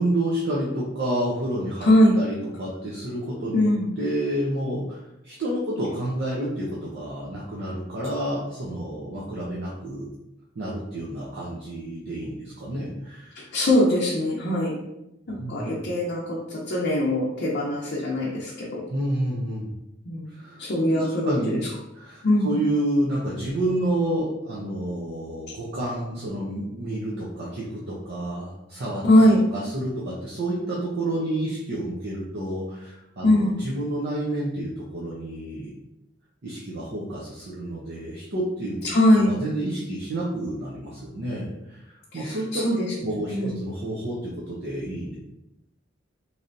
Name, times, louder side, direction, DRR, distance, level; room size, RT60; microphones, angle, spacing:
voice 1, 0.0-10.1 10.6-13.5 15.3-15.8 18.9-19.7 20.3-20.6 20.9-21.7 21.9-29.0 29.5-35.7 36.4-38.8 39.3-42.7 43.0-45.2, right 1 dB, 55° right, -6 dB, 0.6 m, -29 dB
voice 2, 1.8-2.2 3.5-3.9 13.3-14.7 15.3-18.8 20.1-20.3 20.6-21.6 22.2-22.5 29.0-29.4 33.2-33.6 38.8-39.3 42.1-42.9 43.3-43.5, left 1 dB, 55° left, -5 dB, 0.6 m, -21 dB
3.2 x 2.7 x 2.6 m, 0.88 s
head